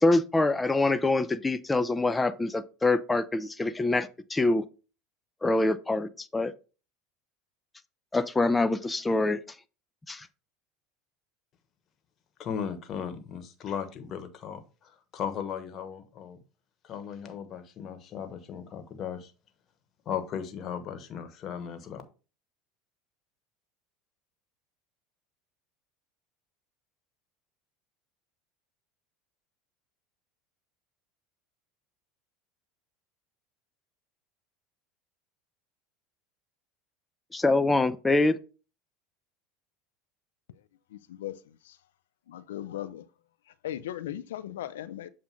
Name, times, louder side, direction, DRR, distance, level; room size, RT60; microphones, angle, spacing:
voice 1, 0.0-4.6 5.4-6.5 8.1-9.4 10.1-10.3 37.3-38.4, left 2 dB, 15° left, 0.5 m, -25 dB
voice 2, 12.4-14.6 15.1-16.4 16.8-19.3 20.1-22.0, left 7 dB, 45° left, 1.1 m, -36 dB
voice 3, 40.9-41.8 42.3-43.1 43.6-45.1, left 12 dB, 85° left, 0.4 m, -38 dB
7.4 x 2.5 x 5.6 m
hypercardioid pair, 95°, 0 cm